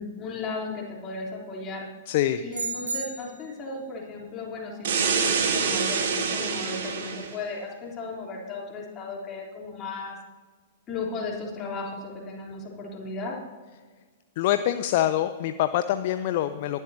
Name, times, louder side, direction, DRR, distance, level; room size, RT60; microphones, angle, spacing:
voice 1, 0.0-1.9 2.4-10.2 10.9-13.4, left 3 dB, 25° left, -2 dB, 3.5 m, -35 dB
voice 2, 2.1-2.4 14.4-16.8, left 12 dB, 45° left, 11 dB, 0.5 m, -25 dB
sound 1, 2.5-3.6, right 4 dB, 75° right, 1.7 m, -33 dB
sound 2, 4.8-7.3, right 5 dB, 55° right, 1.9 m, -26 dB
19.5 x 12.0 x 2.9 m, 1.5 s
figure-of-eight pair, 105°, 0 cm